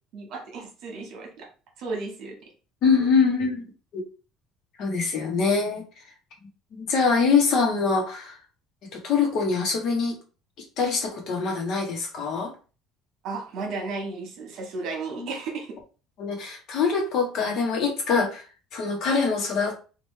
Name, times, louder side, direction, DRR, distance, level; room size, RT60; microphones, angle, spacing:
voice 1, 0.1-1.5 1.8-2.5 13.2-15.8, right 3 dB, 55° right, 1 dB, 1.3 m, -34 dB
voice 2, 2.8-3.6 3.9-4.0 4.8-5.8 6.7-8.4 8.9-10.2 10.8-12.5 15.2-15.3 16.2-18.4 18.7-19.7, left 5 dB, 55° left, 2 dB, 1.1 m, -24 dB
3.2 x 2.5 x 3.2 m, 0.35 s
cardioid pair, 145°, 0 cm